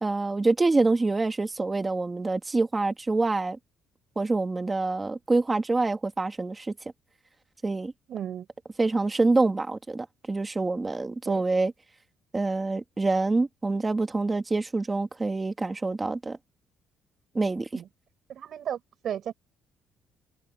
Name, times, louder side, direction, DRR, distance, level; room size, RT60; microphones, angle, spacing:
voice 1, 0.0-3.6 4.2-6.7 7.6-7.9 8.8-11.7 12.3-16.4 17.3-17.8, right 3 dB, 15° right, 2.0 m, -26 dB
voice 2, 8.1-8.5 11.2-11.4 17.7-17.9 18.3-19.3, right 9 dB, 45° right, 7.8 m, -34 dB
cardioid pair, 170°, 0 cm